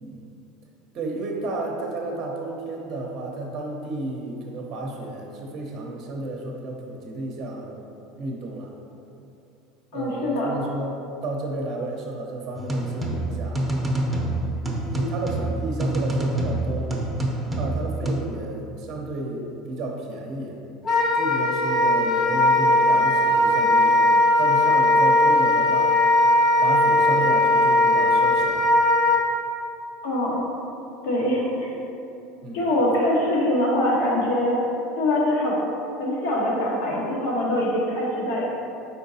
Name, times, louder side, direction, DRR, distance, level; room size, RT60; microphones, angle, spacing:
voice 1, 0.9-7.8 8.2-8.7 9.9-10.9 11.2-13.6 14.9-16.9 17.6-20.6 21.1-26.0 26.6-28.7 32.4-32.6, right 2 dB, 50° right, 0 dB, 0.7 m, -32 dB
voice 2, 9.9-10.5 30.0-30.4 31.0-31.8 32.5-34.6 35.0-35.6 36.0-38.5, left 1 dB, 75° left, -4 dB, 1.1 m, -23 dB
sound 1, 12.5-18.1, right 1 dB, 5° right, 0.7 m, -26 dB
Wind instrument woodwind instrument, 20.8-29.2, left 1 dB, 45° left, 0.7 m, -19 dB
4.5 x 4.3 x 2.7 m, 2.8 s
supercardioid pair, 95°, 0 cm